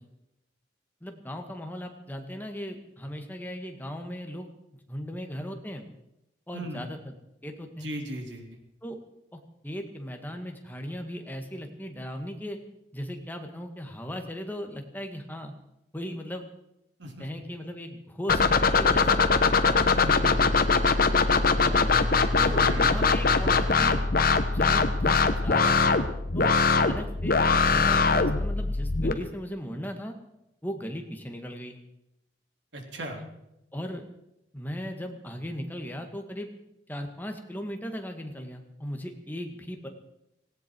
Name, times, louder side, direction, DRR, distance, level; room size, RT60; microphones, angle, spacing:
voice 1, 1.0-4.5 4.9-5.9 6.5-7.1 7.4-7.9 8.8-9.0 9.3-12.6 12.9-15.5 15.9-16.4 17.2-18.4 18.7-19.3 21.6-21.9 22.4-24.0 24.5-25.9 26.3-30.1 30.6-31.8 33.2-33.3 33.7-34.0 34.5-36.5 36.9-39.9, equal, 10° left, 4 dB, 1.8 m, -37 dB
voice 2, 6.5-6.9 7.8-8.5 17.0-17.4 19.8-20.5 22.4-23.1 32.7-33.2, equal, 75° right, 3 dB, 3.2 m, -37 dB
sound 1, 18.3-29.1, left 4 dB, 50° left, 1.1 m, -22 dB
18.0 x 17.0 x 4.6 m, 0.85 s
head